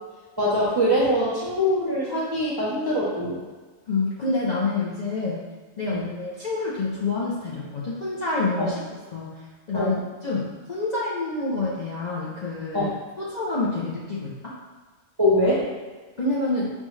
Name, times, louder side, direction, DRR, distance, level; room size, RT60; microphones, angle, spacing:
voice 1, 0.4-3.4 5.9-6.1 8.6-8.7 9.7-10.0 12.7-12.9 15.2-15.6, equal, 30° right, -7 dB, 0.5 m, -23 dB
voice 2, 3.9-5.5 5.8-8.8 9.1-9.4 9.7-10.0 10.2-14.5 16.2-16.7, left 3 dB, 45° left, -8 dB, 0.6 m, -27 dB
5.3 x 2.3 x 3.1 m, 1.4 s
omnidirectional pair, 1.4 m